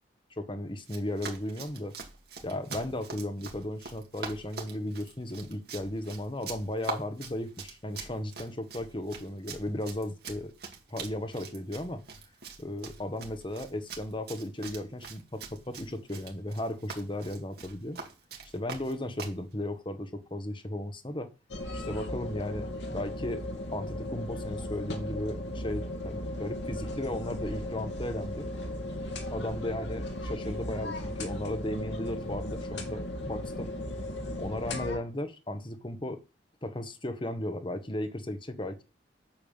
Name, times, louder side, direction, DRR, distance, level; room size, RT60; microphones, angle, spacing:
voice 1, 0.4-1.9 2.4-10.5 10.9-12.0 12.6-18.0 18.5-21.3 21.7-23.4 23.7-28.5 29.3-33.7 34.4-36.2 36.6-38.8, left 1 dB, 25° left, 1.3 m, -35 dB
Run, 0.8-19.4, right 4 dB, 55° right, 2.4 m, -43 dB
sound 1, 21.5-35.0, left 1 dB, 70° left, 2.6 m, -36 dB
9.0 x 7.2 x 7.2 m
head